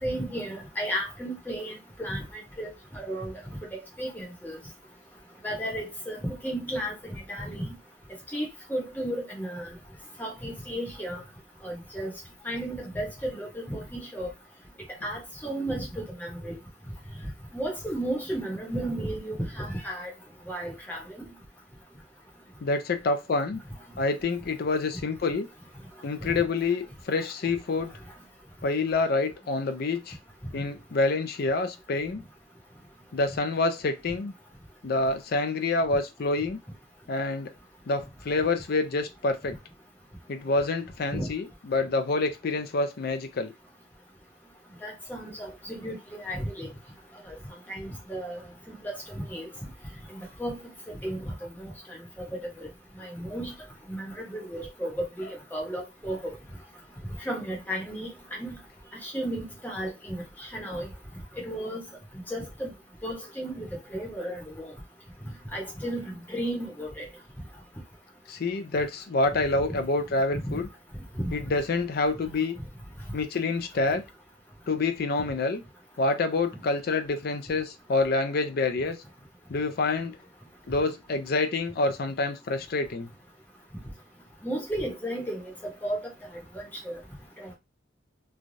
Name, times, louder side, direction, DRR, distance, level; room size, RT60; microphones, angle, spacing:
voice 1, 0.0-3.3 3.7-4.6 5.4-7.7 8.3-9.7 10.2-11.2 11.6-12.1 12.4-14.3 15.0-16.6 17.5-20.1 20.5-21.3 26.3-26.4 41.1-41.3 44.8-46.7 47.3-47.4 47.7-48.4 48.8-49.5 50.1-50.6 51.0-51.7 52.2-52.7 53.0-53.5 53.9-56.4 57.2-58.6 59.0-60.9 61.4-61.8 62.3-62.7 63.0-64.7 65.5-67.1 69.7-69.8 70.4-70.6 71.2-71.3 84.4-85.4 85.8-86.0 86.5-87.0 87.4-87.5, right 1 dB, 10° left, 0.9 m, -34 dB
voice 2, 22.6-23.6 24.0-25.5 26.0-27.9 28.6-30.2 30.5-32.2 33.1-34.3 34.8-36.6 37.1-37.5 37.9-39.6 40.3-43.5 68.3-70.7 71.3-72.6 73.1-74.0 74.7-75.6 76.0-79.0 79.5-80.2 80.7-83.1, left 3 dB, 50° left, 0.4 m, -27 dB
3.2 x 2.3 x 2.6 m
head